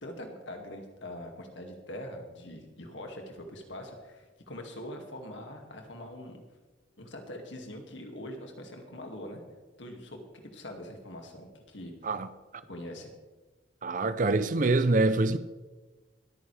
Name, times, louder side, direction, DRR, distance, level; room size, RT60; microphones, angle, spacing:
voice 1, 0.0-6.4 7.0-9.4 9.8-10.2 10.5-11.9 12.7-13.1, left 1 dB, 75° left, 2.2 m, -43 dB
voice 2, 13.8-15.4, right 2 dB, 40° right, 0.5 m, -25 dB
23.5 x 9.3 x 3.4 m
head